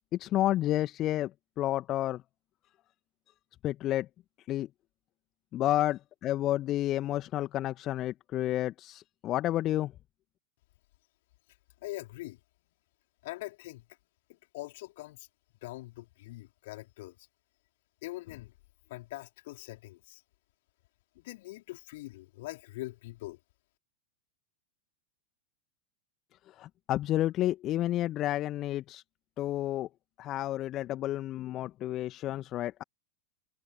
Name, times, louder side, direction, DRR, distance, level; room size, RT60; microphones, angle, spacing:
voice 1, 0.2-1.3 1.6-2.2 3.6-4.1 4.5-4.7 5.5-9.9 26.6-29.0 29.4-29.9 30.2-32.8, left 14 dB, 35° left, 1.7 m, -30 dB
voice 2, 11.8-12.4 13.2-13.9 14.3-15.3 15.6-17.3 18.0-18.5 18.9-20.2 21.2-23.4, left 19 dB, 50° left, 4.1 m, -43 dB
figure-of-eight pair, 90°, 0 cm